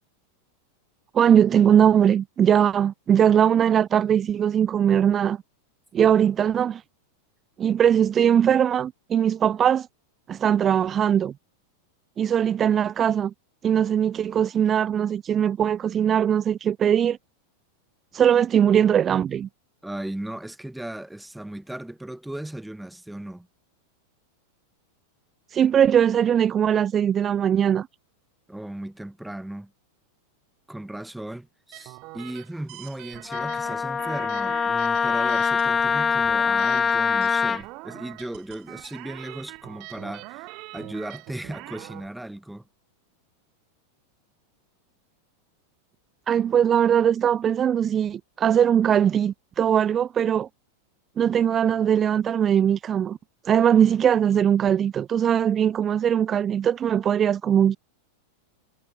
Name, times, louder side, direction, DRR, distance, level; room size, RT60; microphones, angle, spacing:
voice 1, 1.1-5.4 5.9-6.8 7.6-9.9 10.3-11.3 12.2-13.3 13.6-17.2 18.1-19.5 25.5-27.9 46.3-50.5 51.2-53.2 53.4-57.8, right 9 dB, 25° right, 1.0 m, -20 dB
voice 2, 19.8-23.5 28.5-29.7 30.7-40.5 40.7-42.6, right 1 dB, 5° right, 2.1 m, -36 dB
sound 1, 31.7-42.1, right 25 dB, 40° right, 6.6 m, -43 dB
Wind instrument woodwind instrument, 33.3-37.6, left 6 dB, 20° left, 1.4 m, -23 dB
figure-of-eight pair, 90°, 0 cm